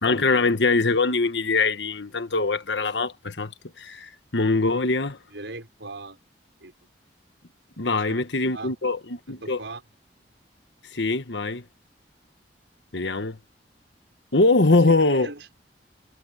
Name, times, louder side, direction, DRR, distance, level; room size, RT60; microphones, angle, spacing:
voice 1, 0.0-5.2 7.8-9.0 9.3-9.6 10.9-11.6 12.9-13.4 14.3-15.3, left 3 dB, 75° left, 1.4 m, -22 dB
voice 2, 5.3-6.2 6.6-6.7 7.9-8.2 8.5-8.7 9.4-9.8 14.7-15.5, right 2 dB, 80° right, 5.4 m, -39 dB
head